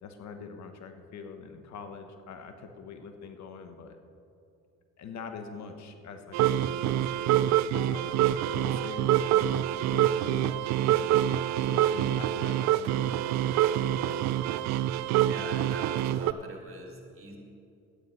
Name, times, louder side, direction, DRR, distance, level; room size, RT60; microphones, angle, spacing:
voice 1, 0.0-4.0 5.0-7.5 7.8-9.6 9.9-11.1 11.5-13.8, left 5 dB, 60° left, 7 dB, 1.2 m, -44 dB
sound 1, 6.3-16.3, right 12 dB, 60° right, 0.5 m, -26 dB
voice 2, 15.2-17.4, right 2 dB, 40° right, 1 dB, 2.8 m, -43 dB
11.5 x 9.6 x 5.4 m, 2.6 s
supercardioid pair, 65°, 32 cm